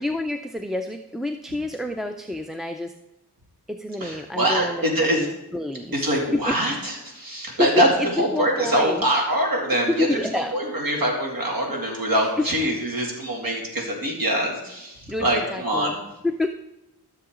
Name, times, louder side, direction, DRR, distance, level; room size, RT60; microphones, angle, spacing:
voice 1, 0.0-2.9 3.7-5.9 6.3-6.6 7.5-7.7 8.0-9.0 9.9-10.6 12.4-12.5 15.1-16.0 16.2-16.5, left 2 dB, ahead, 5 dB, 0.4 m, -28 dB
voice 2, 4.0-5.3 5.9-7.9 8.1-16.0, right 1 dB, 60° right, -1 dB, 2.6 m, -24 dB
13.5 x 6.9 x 3.7 m, 0.93 s
wide cardioid pair, 100°, 38 cm